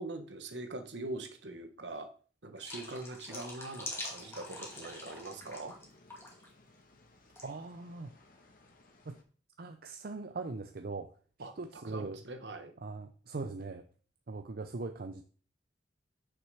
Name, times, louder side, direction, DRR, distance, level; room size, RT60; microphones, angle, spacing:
voice 1, 0.0-2.1 2.4-5.7 11.4-12.7, right 2 dB, 70° right, 6 dB, 1.3 m, -42 dB
sound 1, 2.6-5.8 6.1-6.5 7.4-7.5, left 1 dB, 15° left, 2.3 m, -44 dB
sound 2, 4.2-9.2, left 2 dB, 50° left, 1.5 m, -61 dB
voice 2, 7.4-8.1 9.1-9.2 9.6-11.1 11.4-12.2 12.8-13.9 14.3-15.2, right 3 dB, 55° right, 7 dB, 0.6 m, -41 dB
6.6 x 5.9 x 6.9 m, 0.42 s
head